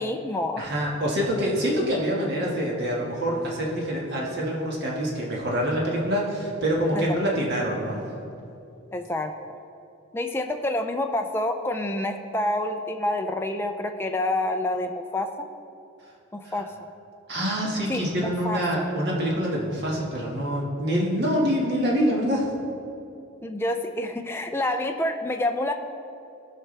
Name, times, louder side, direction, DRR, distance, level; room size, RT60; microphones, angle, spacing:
voice 1, 0.0-0.6 6.9-7.1 8.9-9.3 10.1-15.5 16.3-16.7 17.9-18.8 23.4-25.7, left 1 dB, 10° left, 4 dB, 0.4 m, -28 dB
voice 2, 0.6-8.0 16.4-16.5 17.3-22.5, equal, 55° right, -3 dB, 1.8 m, -26 dB
17.0 x 5.7 x 3.3 m, 2.7 s
head